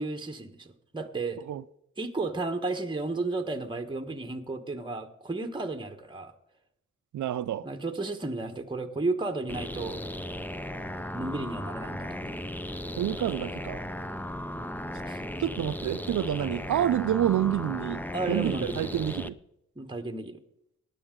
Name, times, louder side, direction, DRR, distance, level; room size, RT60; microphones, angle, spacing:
voice 1, 0.0-1.4 2.0-6.3 7.6-10.0 11.1-12.4 14.5-14.7 15.0-15.2 18.1-18.9 19.8-20.4, right 3 dB, 15° right, 1.2 m, -33 dB
voice 2, 7.1-7.7 13.0-13.8 15.4-19.4, right 11 dB, 75° right, 0.6 m, -28 dB
sound 1, 9.5-19.3, left 1 dB, 5° left, 0.6 m, -36 dB
16.0 x 10.0 x 3.8 m
cardioid pair, 65°, 30 cm